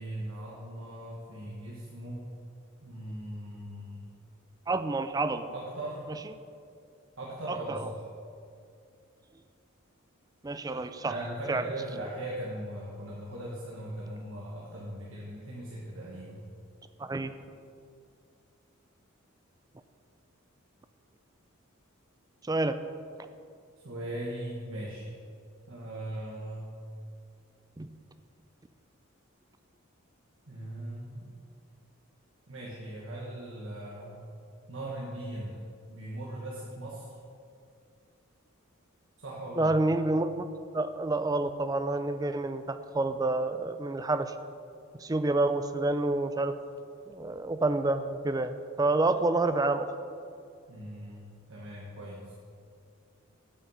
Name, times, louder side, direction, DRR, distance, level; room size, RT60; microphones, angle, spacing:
voice 1, 0.0-2.2 2.8-4.1 5.5-6.1 7.2-8.0 11.0-16.5 23.8-25.1 25.7-26.6 30.5-31.3 32.5-34.2 34.7-37.1 39.2-39.7 50.7-52.3, right 1 dB, 70° right, -5 dB, 1.5 m, -39 dB
voice 2, 4.7-5.5 7.5-7.9 10.4-11.1 11.5-11.6 17.0-17.3 22.5-22.8 27.8-27.9 39.6-40.5 40.7-44.3 45.0-46.5 47.1-49.9, right 2 dB, 15° right, 10 dB, 0.4 m, -28 dB
8.6 x 8.6 x 5.5 m, 2.4 s
head